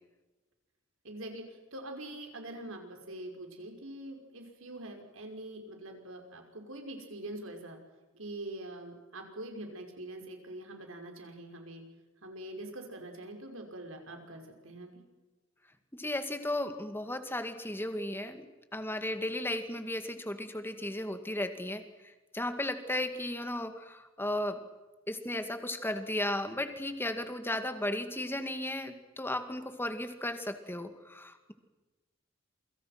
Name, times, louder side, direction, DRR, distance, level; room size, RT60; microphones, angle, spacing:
voice 1, 1.0-1.4 1.7-7.8 8.1-11.8 12.2-15.0, right 1 dB, 85° right, 4 dB, 5.8 m, -44 dB
voice 2, 15.9-18.5 18.7-24.6 25.1-31.5, left 1 dB, 10° left, 8 dB, 2.2 m, -35 dB
28.5 x 24.5 x 6.0 m, 1.1 s
head